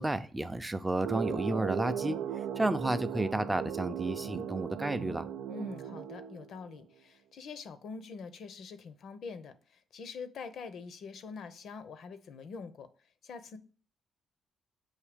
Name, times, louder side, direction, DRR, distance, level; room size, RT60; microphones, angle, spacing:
voice 1, 0.0-2.2 2.6-5.3, right 1 dB, 10° right, 10 dB, 0.5 m, -31 dB
sound 1, 1.0-6.8, right 9 dB, 85° right, 0.3 m, -37 dB
voice 2, 5.5-12.9 13.2-13.6, left 5 dB, 65° left, 11 dB, 0.6 m, -44 dB
7.2 x 2.7 x 5.0 m, 0.41 s
cardioid pair, 90°, 0 cm